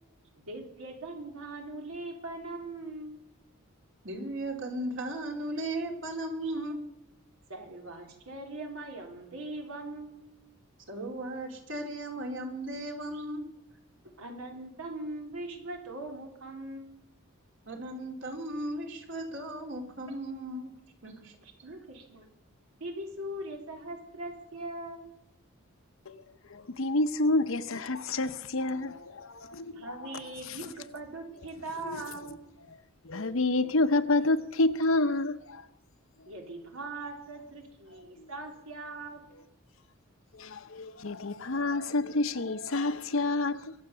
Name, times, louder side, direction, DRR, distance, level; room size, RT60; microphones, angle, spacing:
voice 1, 0.5-3.2 7.5-10.3 14.2-17.1 21.4-22.3 22.8-25.2 29.7-32.5 36.3-39.2, right 2 dB, 85° right, 3.3 m, -41 dB
voice 2, 4.0-6.8 10.9-13.5 17.7-20.7 21.0-21.3, right 1 dB, 60° right, 2.8 m, -36 dB
voice 3, 26.5-29.8 31.8-32.0 33.0-35.6 40.3-43.7, left 2 dB, 70° left, 0.9 m, -28 dB
23.0 x 8.0 x 6.8 m
head